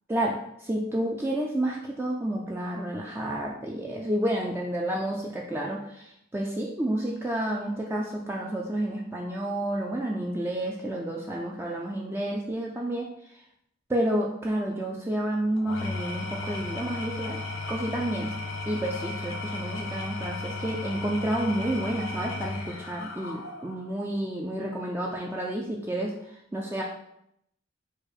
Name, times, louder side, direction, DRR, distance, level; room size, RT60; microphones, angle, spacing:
voice 1, 0.1-13.1 13.3-13.4 13.9-18.3 18.7-26.8, right 1 dB, 10° right, -3 dB, 0.4 m, -30 dB
Engine / Tools, 15.6-23.9, left 2 dB, 70° left, 0.7 m, -35 dB
4.5 x 2.3 x 4.8 m, 0.74 s
head